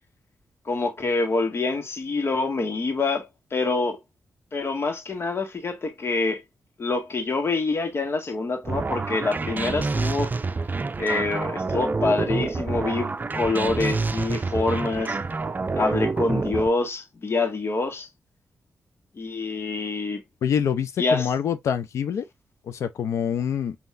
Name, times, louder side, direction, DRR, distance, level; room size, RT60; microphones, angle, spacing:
voice 1, 0.6-4.0 4.5-6.4 6.8-10.3 11.0-15.2 15.8-18.1 19.1-20.2 21.0-21.3, left 3 dB, 55° left, 1.8 m, -26 dB
sound 1, 8.6-16.7, right 3 dB, 35° right, 0.6 m, -27 dB
voice 2, 20.4-22.3 22.6-23.8, left 8 dB, 80° left, 0.7 m, -25 dB
5.7 x 3.1 x 2.6 m
supercardioid pair, 45°, 5 cm